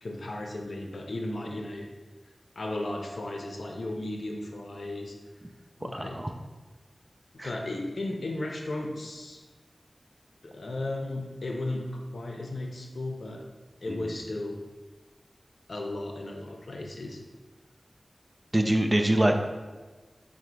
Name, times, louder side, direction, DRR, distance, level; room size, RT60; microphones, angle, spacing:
voice 1, 0.0-1.9 2.6-5.2 5.8-6.2 7.4-9.4 10.4-13.5 13.8-14.6 15.7-17.2, left 2 dB, 80° left, 1 dB, 0.5 m, -35 dB
voice 2, 5.9-6.3 7.4-7.5 13.9-14.0 18.5-19.4, right 1 dB, 25° right, 4 dB, 0.3 m, -24 dB
3.8 x 2.1 x 4.4 m, 1.3 s
wide cardioid pair, 70°, 0 cm